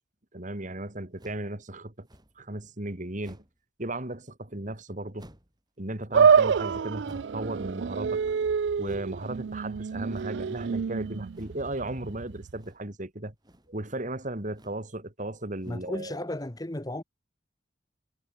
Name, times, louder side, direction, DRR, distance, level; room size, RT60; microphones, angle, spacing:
voice 1, 0.3-2.1 2.4-3.4 3.8-5.3 5.8-8.2 8.8-13.3 13.7-16.1, right 1 dB, 40° right, 2.4 m, -36 dB
sound 1, 1.2-1.5 2.1-2.5 3.2-3.6 5.2-5.6 7.0-7.5 8.8-9.2 10.1-10.5 11.3-11.7 12.5-13.0 13.3-13.8 14.5-14.9 15.5-16.0, equal, 20° right, 6.2 m, -55 dB
sound 2, 6.1-12.6, right 6 dB, 65° right, 0.4 m, -26 dB
voice 2, 15.7-17.0, left 1 dB, 20° left, 1.2 m, -34 dB
head